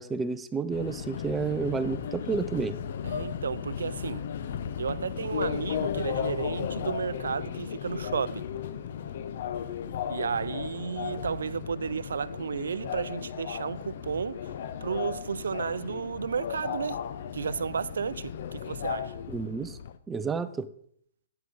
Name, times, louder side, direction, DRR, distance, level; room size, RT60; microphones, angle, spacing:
voice 1, 0.0-2.8 19.3-19.8 20.1-20.7, right 5 dB, 15° right, 0.5 m, -30 dB
Subway metro underground, 0.7-20.0, left 8 dB, 60° left, 0.7 m, -35 dB
voice 2, 3.0-4.3 4.8-8.5 10.1-14.5 14.8-17.0 17.3-19.2, right 6 dB, 85° right, 0.4 m, -33 dB
10.5 x 9.6 x 3.9 m
hypercardioid pair, 140°, 0 cm